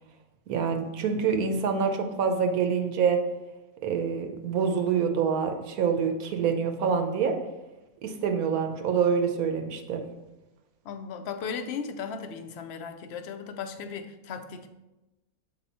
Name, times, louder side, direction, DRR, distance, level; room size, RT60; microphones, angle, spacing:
voice 1, 0.5-3.2 3.8-7.4 8.0-10.0, right 6 dB, 75° right, 5 dB, 1.3 m, -26 dB
voice 2, 10.8-14.7, left 6 dB, 60° left, 7 dB, 0.8 m, -36 dB
7.0 x 4.7 x 4.1 m, 1.0 s
omnidirectional pair, 1.6 m